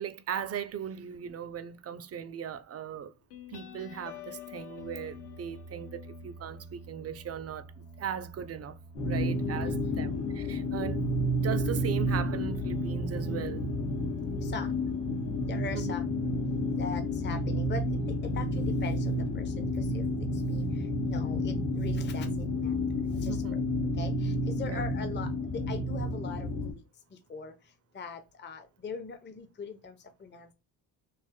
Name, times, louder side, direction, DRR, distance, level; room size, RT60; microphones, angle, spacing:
voice 1, 0.0-3.1 3.5-13.7 15.7-15.9 23.2-23.6 24.7-24.9, right 8 dB, 35° right, 0.5 m, -38 dB
sound 1, 3.3-10.5, left 3 dB, 70° left, 1.1 m, -48 dB
sound 2, 9.0-26.7, left 1 dB, 85° left, 1.5 m, -30 dB
voice 2, 9.6-10.1 14.4-14.8 15.5-16.0 16.8-20.0 20.3-22.7 23.2-23.6 23.9-26.8 27.1-30.5, left 4 dB, 25° left, 0.7 m, -41 dB
3.2 x 2.5 x 3.6 m
supercardioid pair, 75°, 41 cm